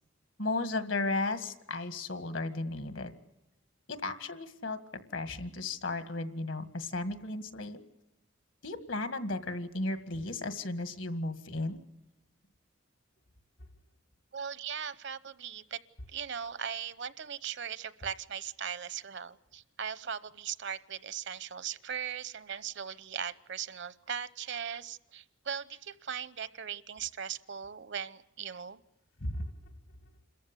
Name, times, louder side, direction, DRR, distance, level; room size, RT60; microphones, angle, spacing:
voice 1, 0.4-3.1 3.9-4.8 5.1-7.8 8.6-11.8 29.2-29.5, left 2 dB, 75° left, 10 dB, 1.9 m, -34 dB
voice 2, 14.3-15.8 16.1-28.8, right 7 dB, 65° right, 16 dB, 0.9 m, -39 dB
27.5 x 14.5 x 9.8 m, 0.91 s
head